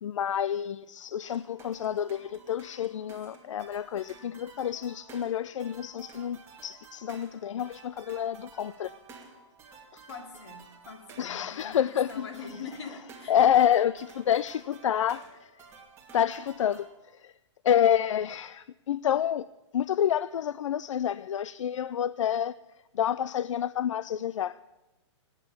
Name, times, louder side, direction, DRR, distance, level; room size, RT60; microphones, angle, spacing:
voice 1, 0.0-8.9 9.9-10.0 11.2-12.3 13.3-15.5 16.1-16.9 17.1-17.3 17.6-19.5 19.7-22.5 22.9-24.5, left 10 dB, 85° left, 0.5 m, -28 dB
Chiến Thắng Linh Đình, 1.3-17.0, right 5 dB, 15° right, 2.6 m, -52 dB
voice 2, 10.1-13.4, left 5 dB, 65° left, 3.4 m, -43 dB
18.5 x 9.1 x 8.5 m
hypercardioid pair, 155°, 16 cm